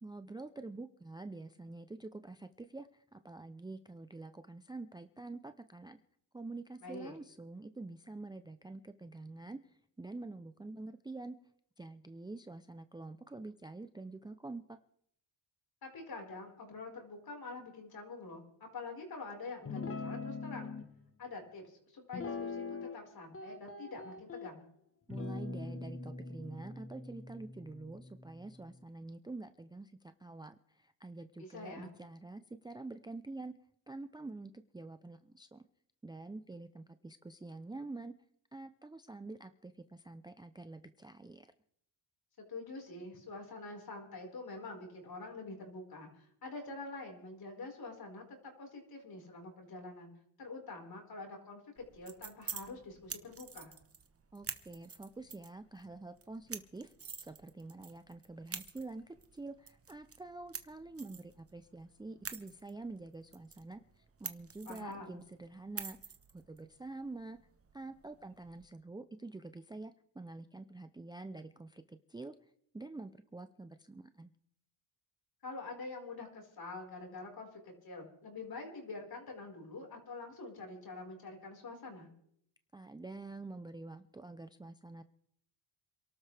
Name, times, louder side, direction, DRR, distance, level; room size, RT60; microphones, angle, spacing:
voice 1, 0.0-6.0 6.3-11.4 11.8-14.8 25.1-33.5 33.9-35.7 36.0-38.1 38.5-41.5 54.3-67.4 67.7-72.3 72.7-74.3 82.7-85.0, right 2 dB, 10° right, 10 dB, 0.6 m, -47 dB
voice 2, 6.8-7.1 15.8-20.7 21.2-24.6 31.4-31.9 42.5-50.1 50.4-53.7 64.6-65.2 75.4-82.1, left 3 dB, 50° left, 1 dB, 5.1 m, -46 dB
Guitar, 19.7-20.9 22.1-23.1 23.3-24.5 25.1-28.6, left 3 dB, 25° left, 1.4 m, -42 dB
sound 1, 51.8-68.7, right 6 dB, 30° right, 1.3 m, -49 dB
27.5 x 12.5 x 3.5 m, 0.71 s
cardioid pair, 85°, 48 cm